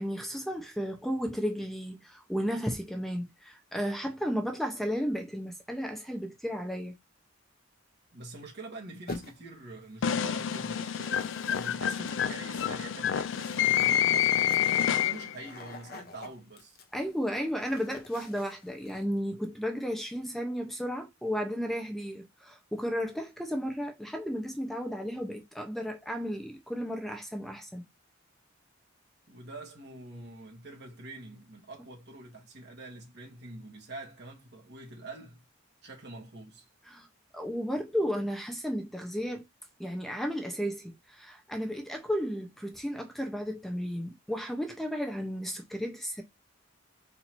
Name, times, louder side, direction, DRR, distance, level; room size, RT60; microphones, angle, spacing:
voice 1, 0.0-6.9 16.9-27.8 36.9-37.1 37.3-39.4 39.8-46.2, equal, ahead, 0.8 m, -33 dB
voice 2, 8.1-14.5 14.9-16.8 29.3-35.4 35.8-36.6, right 2 dB, 60° right, 1.6 m, -45 dB
sound 1, 9.1-9.6 10.5-19.0, left 3 dB, 50° left, 0.9 m, -48 dB
sound 2, 10.0-15.4, left 10 dB, 75° left, 0.4 m, -28 dB
4.2 x 2.8 x 4.4 m
head